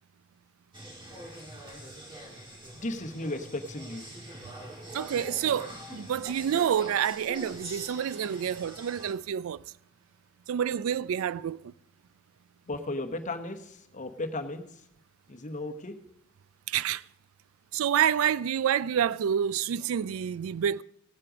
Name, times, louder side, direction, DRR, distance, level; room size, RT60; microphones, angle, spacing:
sound 1, 0.7-9.1, right 1 dB, 25° right, 2.1 m, -44 dB
voice 1, 2.8-4.1 12.7-14.7 15.3-16.0, left 2 dB, 40° left, 1.0 m, -35 dB
voice 2, 4.9-9.6 10.5-11.7 16.7-17.0 17.7-20.8, right 9 dB, 90° right, 0.3 m, -28 dB
Gong, 7.6-10.7, right 2 dB, 70° right, 3.3 m, -49 dB
17.0 x 7.6 x 5.0 m
head